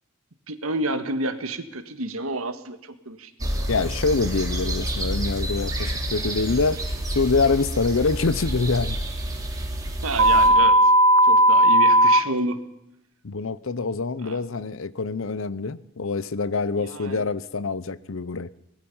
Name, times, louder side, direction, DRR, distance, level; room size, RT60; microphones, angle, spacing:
voice 1, 0.5-3.7 10.0-10.8 11.2-12.6 14.2-14.7 16.7-17.3, right 2 dB, 80° right, 10 dB, 1.7 m, -30 dB
sound 1, 3.4-10.5, right 1 dB, 15° right, 3.3 m, -29 dB
voice 2, 3.7-6.8 7.1-9.0 13.2-18.5, left 4 dB, 65° left, 18 dB, 0.7 m, -25 dB
sound 2, 10.2-12.2, equal, 65° right, 0.7 m, -15 dB
23.5 x 19.5 x 5.6 m, 0.85 s
head